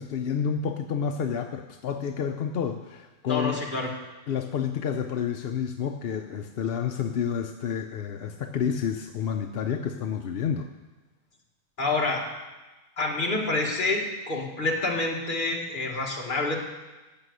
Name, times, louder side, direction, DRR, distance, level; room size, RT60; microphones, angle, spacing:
voice 1, 0.0-3.6 4.3-10.7, left 7 dB, 55° left, 5 dB, 0.7 m, -29 dB
voice 2, 3.3-4.0 11.8-12.3 13.0-16.6, left 2 dB, 35° left, -1 dB, 1.9 m, -27 dB
14.5 x 6.2 x 8.0 m, 1.2 s
omnidirectional pair, 1.5 m